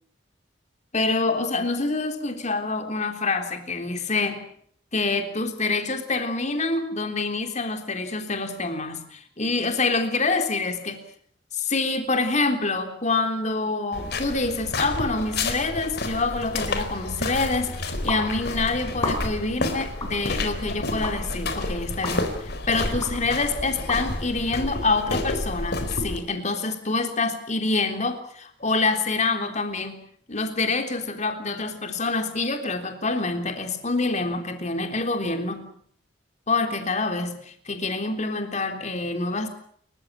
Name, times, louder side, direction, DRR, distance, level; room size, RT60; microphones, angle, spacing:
voice 1, 0.9-4.4 4.9-11.0 11.5-30.0 30.3-35.7 36.5-39.5, left 3 dB, 40° left, 6 dB, 3.5 m, -26 dB
sound 1, 13.9-26.2, left 2 dB, 55° left, 4.2 m, -30 dB
sound 2, 18.1-18.2 18.9-19.4 20.0-20.1 21.0-21.1 22.0-22.2 23.0-23.1 23.9-24.0, left 2 dB, 20° left, 7.2 m, -30 dB
29.5 x 15.5 x 8.9 m, 0.63 s
head